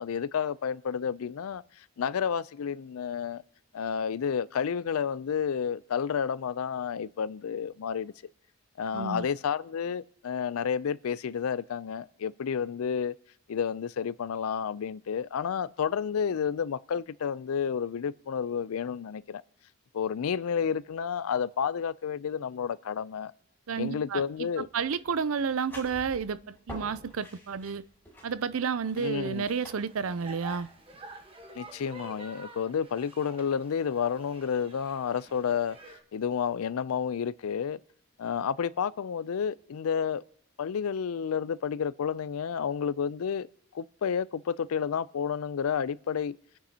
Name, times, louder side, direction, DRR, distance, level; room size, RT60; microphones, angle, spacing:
voice 1, 0.0-3.4 3.7-8.1 8.8-13.2 13.5-19.4 19.9-23.3 23.8-24.7 29.0-29.4 31.5-35.8 36.1-37.8 38.2-40.2 40.6-43.5 43.7-46.4, left 7 dB, 90° left, 0.4 m, -30 dB
voice 2, 8.9-9.3 23.7-27.8 28.2-30.7, right 6 dB, 80° right, 0.5 m, -31 dB
sound 1, 24.3-31.9, equal, 10° left, 5.4 m, -49 dB
sound 2, 29.0-36.0, right 3 dB, 25° right, 1.2 m, -49 dB
29.0 x 10.0 x 2.8 m
head